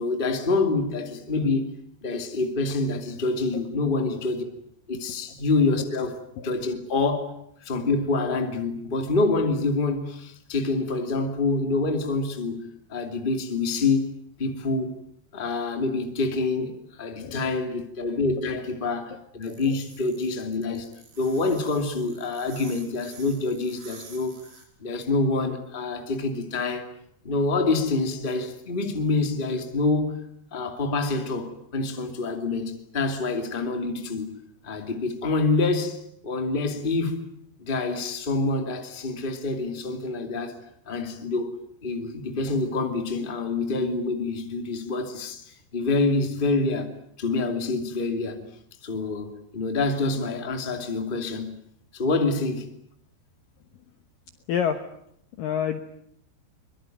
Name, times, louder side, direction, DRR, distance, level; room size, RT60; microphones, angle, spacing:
voice 1, 0.0-1.6 2.0-4.4 4.9-6.2 6.4-7.3 7.6-12.6 12.9-14.0 14.4-15.0 15.3-20.9 21.2-24.4 24.8-26.9 27.2-30.2 30.5-34.3 34.6-37.2 37.6-40.6 40.9-41.5 41.8-46.9 47.2-48.4 48.8-51.5 51.9-52.7, left 3 dB, 15° left, 1.8 m, -26 dB
voice 2, 17.2-17.5 19.6-19.8 54.5-54.9 55.4-55.8, left 8 dB, 70° left, 2.3 m, -28 dB
sound 1, 19.4-24.6, right 4 dB, 75° right, 8.2 m, -49 dB
24.0 x 22.5 x 9.3 m
omnidirectional pair, 5.2 m